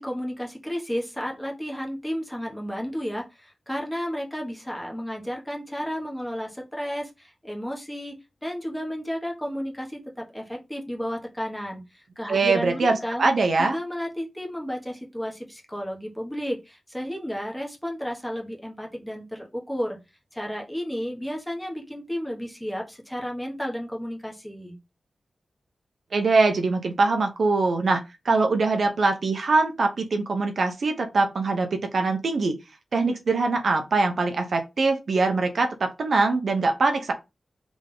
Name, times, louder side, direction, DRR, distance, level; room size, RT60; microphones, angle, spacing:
voice 1, 0.0-8.1 8.4-13.3 13.6-20.0 20.3-24.8, equal, 5° left, 1.4 m, -32 dB
voice 2, 12.3-13.8 26.1-32.5 32.9-37.1, right 3 dB, 65° right, 0.8 m, -23 dB
3.6 x 3.5 x 3.8 m
wide cardioid pair, 95°, 0 cm